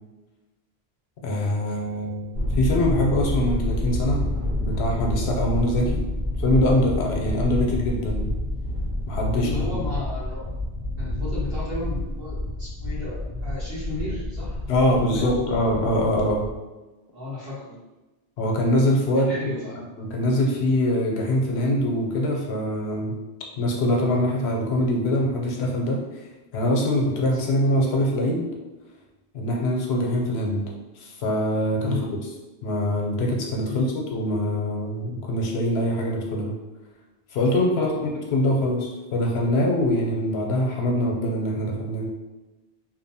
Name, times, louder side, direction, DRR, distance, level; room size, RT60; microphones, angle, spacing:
voice 1, 1.2-4.2 4.6-6.0 6.4-8.3 9.1-9.5 14.7-16.4 18.4-19.3 20.0-23.1 23.6-26.2 26.5-28.5 29.3-30.7 31.0-32.2 32.6-36.5 37.3-42.3, left 1 dB, 85° left, 0 dB, 0.9 m, -23 dB
Thunder, 2.3-16.6, left 1 dB, 80° right, 1.1 m, -28 dB
voice 2, 9.3-10.5 11.0-14.6 14.9-15.9 17.1-17.8 19.2-19.8 27.3-27.5 31.8-32.1 33.7-34.0 37.7-38.0, left 3 dB, 65° right, -8 dB, 1.3 m, -34 dB
2.7 x 2.0 x 2.7 m, 1.1 s
omnidirectional pair, 1.1 m